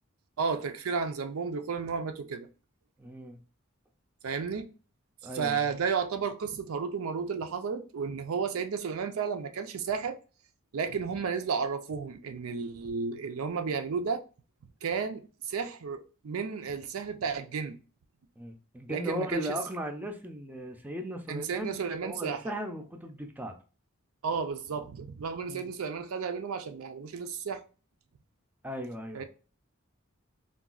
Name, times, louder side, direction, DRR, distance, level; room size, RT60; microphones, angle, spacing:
voice 1, 0.4-2.5 4.2-4.7 5.3-10.2 10.7-14.2 14.8-17.8 18.9-19.6 21.3-22.5 24.2-27.6 29.1-29.2, right 5 dB, 85° right, 0.5 m, -33 dB
voice 2, 3.0-3.4 5.2-5.6 18.4-23.5 25.5-25.7 28.6-29.2, equal, 10° right, 0.4 m, -37 dB
3.8 x 2.3 x 2.3 m
head